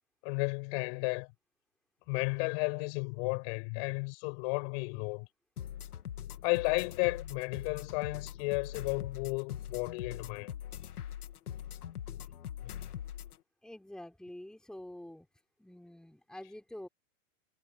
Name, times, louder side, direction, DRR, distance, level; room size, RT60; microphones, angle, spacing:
voice 1, 0.2-1.3 2.1-5.3 6.4-10.5 12.6-12.9, left 35 dB, 45° left, 6.6 m, -33 dB
sound 1, 5.6-13.4, left 10 dB, 85° left, 2.6 m, -42 dB
voice 2, 13.6-15.3 15.6-16.9, left 1 dB, ahead, 3.8 m, -47 dB
hypercardioid pair, 145°, 44 cm